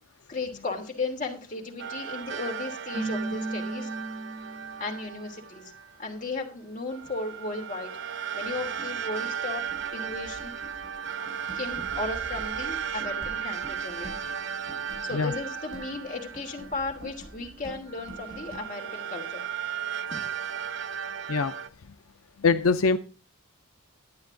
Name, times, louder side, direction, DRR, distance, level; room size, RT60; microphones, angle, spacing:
voice 1, 0.3-3.9 4.8-5.7 6.0-7.9 8.3-10.5 11.5-14.1 15.0-19.8 20.1-20.4 20.9-21.1, left 3 dB, 35° left, 2.8 m, -35 dB
sound 1, 1.8-6.0 6.9-17.3 17.9-21.7, right 8 dB, 55° right, 0.6 m, -35 dB
Keyboard (musical), 2.9-4.9, right 2 dB, 20° right, 5.4 m, -34 dB
sound 2, 8.3-18.6, right 1 dB, 80° right, 6.5 m, -47 dB
voice 2, 22.4-23.0, left 4 dB, 75° left, 0.6 m, -23 dB
11.5 x 9.6 x 3.8 m
head